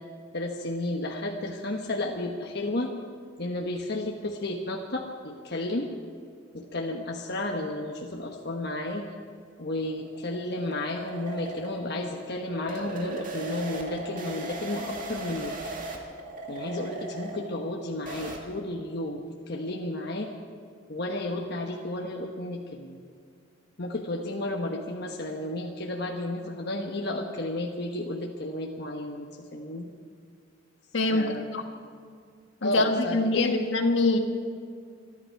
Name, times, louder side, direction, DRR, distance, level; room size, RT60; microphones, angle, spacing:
voice 1, 0.3-2.9 3.4-5.9 6.5-9.1 9.6-15.6 16.5-20.3 20.9-23.0 23.8-29.3 29.5-29.9 31.1-31.5 32.6-33.6, left 1 dB, 60° left, 0 dB, 1.2 m, -32 dB
sound 1, 9.4-18.4, right 2 dB, 45° right, 2.2 m, -38 dB
voice 2, 30.9-31.6 32.6-34.2, left 2 dB, 80° left, 4 dB, 1.6 m, -24 dB
26.5 x 11.0 x 4.6 m, 2.2 s
head